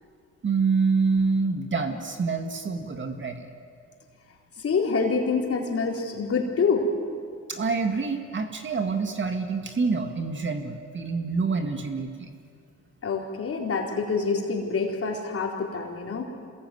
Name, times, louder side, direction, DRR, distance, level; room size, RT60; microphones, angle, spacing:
voice 1, 0.4-3.5 7.5-12.3, right 4 dB, 40° right, 5 dB, 2.0 m, -26 dB
voice 2, 4.6-6.9 13.0-16.3, left 4 dB, 50° left, 0 dB, 4.3 m, -26 dB
27.0 x 21.0 x 9.5 m, 2.2 s
cardioid pair, 90°, 30 cm